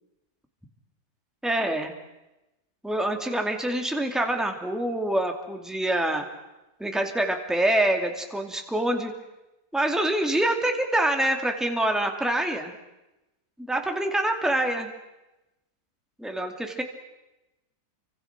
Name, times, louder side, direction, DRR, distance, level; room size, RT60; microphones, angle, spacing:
voice 1, 1.4-1.9 2.8-6.3 6.8-9.1 9.7-12.7 13.6-14.9 16.2-16.8, right 1 dB, ahead, 4 dB, 2.7 m, -26 dB
30.0 x 25.5 x 6.2 m, 0.99 s
omnidirectional pair, 1.8 m